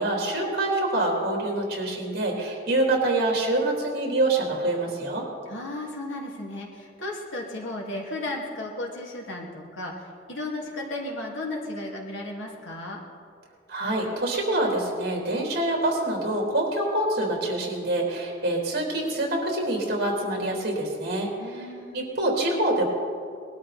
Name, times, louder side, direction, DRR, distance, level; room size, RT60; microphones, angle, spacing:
voice 1, 0.0-5.2 13.7-21.3 21.5-21.7 21.9-22.8, right 1 dB, 55° right, -1 dB, 3.6 m, -26 dB
voice 2, 5.5-13.0 21.4-22.0, left 2 dB, 80° left, -1 dB, 2.7 m, -34 dB
20.5 x 12.5 x 4.3 m, 2.1 s
head